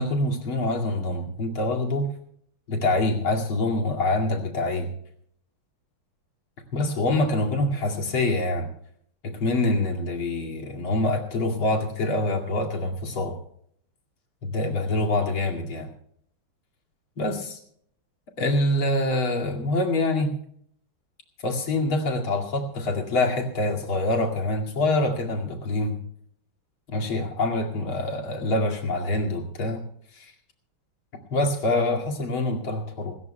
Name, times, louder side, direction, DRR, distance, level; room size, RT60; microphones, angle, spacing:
voice 1, 0.0-2.1 2.7-4.9 6.7-8.7 9.2-13.4 14.4-15.9 17.2-17.6 18.4-20.3 21.4-26.0 26.9-29.8 30.1-30.3 31.3-33.1, left 2 dB, 75° left, 1 dB, 3.2 m, -25 dB
26.0 x 14.0 x 2.2 m, 0.66 s
omnidirectional pair, 2.3 m